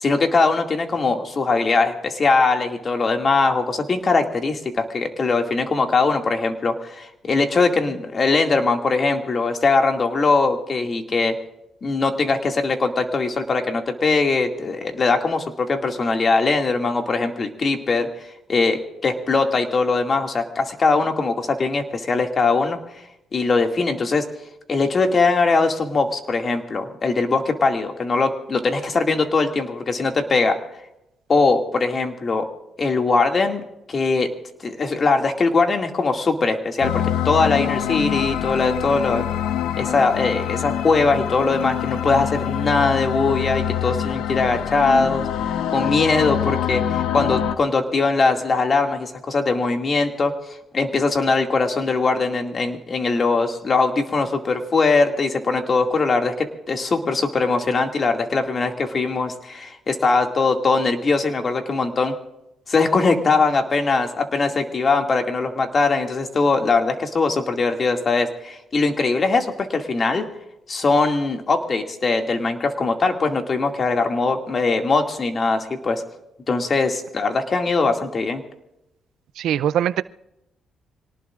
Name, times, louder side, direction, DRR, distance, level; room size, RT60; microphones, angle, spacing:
voice 1, 0.0-11.4 11.8-18.1 18.5-22.8 23.3-24.3 24.7-30.6 31.3-32.5 32.8-33.6 33.9-34.3 34.6-39.2 39.8-50.3 50.7-62.2 62.7-70.3 70.7-76.0 76.5-78.4, left 3 dB, 40° left, 2.2 m, -21 dB
sound 1, 36.8-47.6, left 10 dB, 90° left, 0.8 m, -25 dB
voice 2, 79.4-80.0, right 10 dB, 80° right, 0.4 m, -21 dB
25.5 x 18.5 x 2.5 m
cardioid pair, 90°, 0 cm